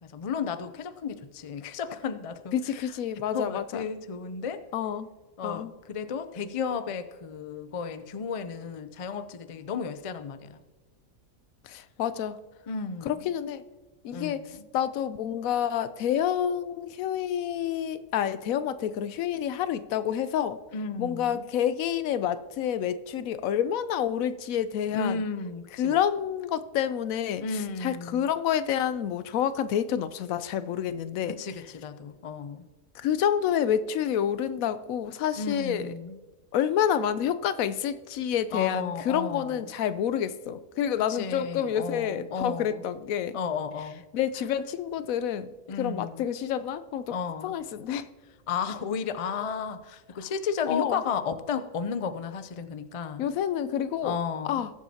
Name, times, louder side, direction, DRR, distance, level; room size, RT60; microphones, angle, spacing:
voice 1, 0.1-2.9 3.3-4.6 5.4-10.6 12.7-13.3 14.1-14.7 20.7-21.5 24.9-26.0 27.4-28.3 31.3-32.7 35.4-36.2 38.5-39.7 41.1-42.8 43.3-44.0 45.7-46.3 47.1-47.5 48.5-53.3 54.0-54.6, left 5 dB, 60° left, 11 dB, 0.3 m, -33 dB
voice 2, 2.5-3.9 4.7-5.1 5.4-5.7 11.6-12.4 13.0-13.6 14.0-20.6 21.0-25.2 25.8-31.4 32.9-35.9 36.5-43.4 44.1-45.5 45.8-47.1 47.4-48.1 50.7-51.0 53.2-54.2 54.4-54.7, left 9 dB, 80° left, 14 dB, 1.0 m, -28 dB
20.0 x 7.3 x 2.8 m, 1.2 s
omnidirectional pair, 1.4 m